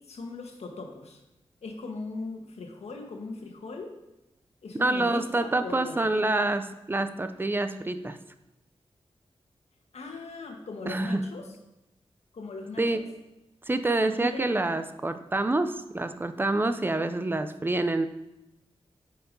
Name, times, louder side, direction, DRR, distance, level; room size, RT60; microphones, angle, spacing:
voice 1, 0.1-1.2 1.6-3.9 4.6-6.5 9.9-11.4 12.3-13.0 14.0-14.5, left 3 dB, 85° left, 2 dB, 1.4 m, -39 dB
voice 2, 4.8-8.2 10.9-11.3 12.8-13.0 13.7-18.1, right 2 dB, 20° right, 10 dB, 0.5 m, -27 dB
8.6 x 4.7 x 5.3 m, 0.97 s
wide cardioid pair, 125°, 11 cm